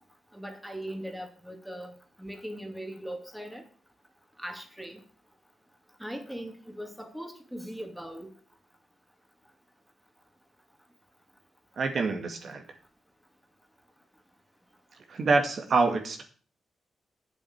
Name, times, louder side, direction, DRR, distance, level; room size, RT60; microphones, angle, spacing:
voice 1, 0.3-3.6 4.4-5.0 6.0-8.3, equal, ahead, 4 dB, 2.5 m, -40 dB
voice 2, 11.8-12.6 15.1-16.2, right 4 dB, 55° right, 5 dB, 2.0 m, -26 dB
7.7 x 7.7 x 8.5 m, 0.41 s
cardioid pair, 85°, 0 cm